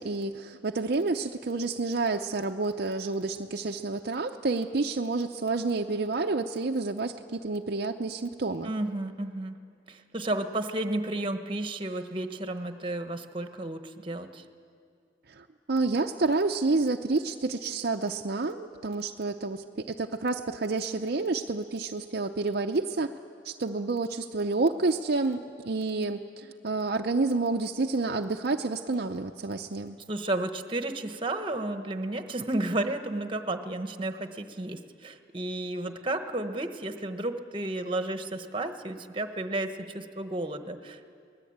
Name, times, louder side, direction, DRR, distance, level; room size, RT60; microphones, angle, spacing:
voice 1, 0.0-8.7 15.3-23.1 23.4-25.4 25.6-30.0, right 3 dB, 55° right, 4 dB, 0.6 m, -29 dB
voice 2, 8.6-9.6 9.9-14.4 30.1-41.1, right 2 dB, 30° right, 8 dB, 1.2 m, -32 dB
24.5 x 19.5 x 8.7 m, 2.3 s
head